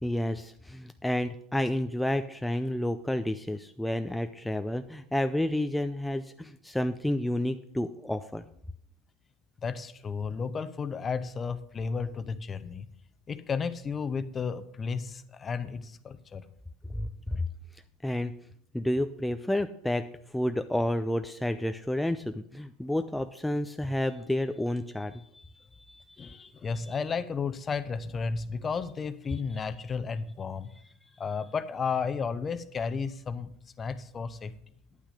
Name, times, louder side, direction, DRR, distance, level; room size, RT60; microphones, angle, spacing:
voice 1, 0.0-8.4 16.9-17.4 18.0-18.3 18.7-25.5 25.9-26.3 26.9-27.0, left 1 dB, 5° left, 8 dB, 0.5 m, -30 dB
voice 2, 9.6-12.9 13.3-16.5 26.2-30.7 31.2-34.5, left 5 dB, 30° left, 13 dB, 0.8 m, -33 dB
9.8 x 8.8 x 5.1 m, 0.67 s
hypercardioid pair, 80°, 0 cm